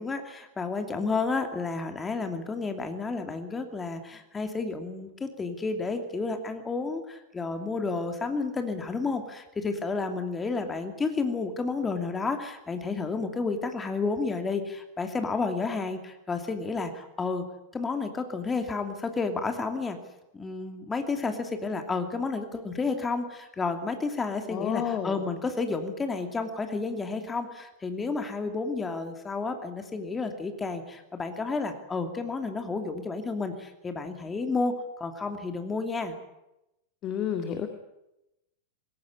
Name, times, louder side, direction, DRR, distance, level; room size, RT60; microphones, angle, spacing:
voice 1, 0.0-17.4 17.7-20.0 20.3-36.2, left 4 dB, 15° left, 6 dB, 2.7 m, -31 dB
voice 2, 24.5-25.3 37.0-37.7, left 9 dB, 35° left, 7 dB, 2.2 m, -30 dB
20.5 x 18.5 x 9.8 m, 0.91 s
figure-of-eight pair, 90°, 0 cm